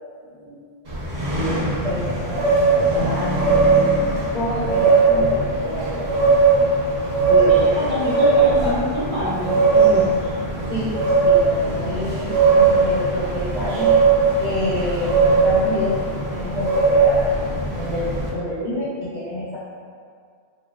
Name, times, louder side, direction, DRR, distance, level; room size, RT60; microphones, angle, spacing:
sound 1, 0.9-18.3, right 4 dB, 65° right, 1.1 m, -19 dB
voice 1, 1.3-3.3 4.3-6.2 7.3-8.8 10.7-13.9 14.4-17.3 17.7-19.6, left 1 dB, 50° left, -9 dB, 0.7 m, -27 dB
voice 2, 7.7-10.1, equal, 40° right, -12 dB, 0.6 m, -27 dB
3.0 x 2.4 x 2.2 m, 2.1 s
omnidirectional pair, 1.1 m